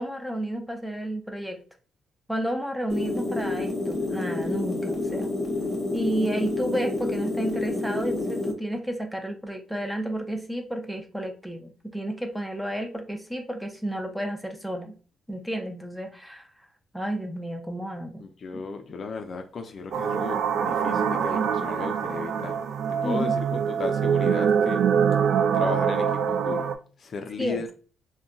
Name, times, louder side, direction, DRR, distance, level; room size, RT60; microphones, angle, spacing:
voice 1, 0.0-1.6 2.3-5.3 5.9-14.9 15.3-16.5 16.9-18.2 23.0-23.3 27.4-27.6, right 1 dB, 5° right, 0.5 m, -31 dB
sound 1, 2.9-8.5, left 2 dB, 25° left, 0.9 m, -29 dB
voice 2, 18.2-22.6 22.9-24.9 25.5-26.7 27.0-27.7, left 4 dB, 50° left, 0.4 m, -35 dB
sound 2, 19.9-26.7, right 7 dB, 70° right, 0.3 m, -24 dB
2.3 x 2.2 x 3.8 m
cardioid pair, 90°, 0 cm